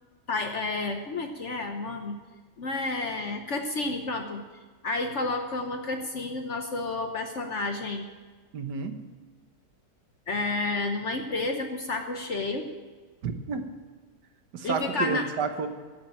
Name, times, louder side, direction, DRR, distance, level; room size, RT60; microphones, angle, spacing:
voice 1, 0.3-2.2 2.6-4.4 4.8-8.1 10.3-12.7 14.6-15.3, left 3 dB, 50° left, 5 dB, 1.1 m, -30 dB
voice 2, 8.5-9.0 13.2-13.7 14.5-15.7, right 5 dB, 90° right, 8 dB, 1.7 m, -30 dB
14.5 x 7.5 x 8.7 m, 1.4 s
omnidirectional pair, 1.7 m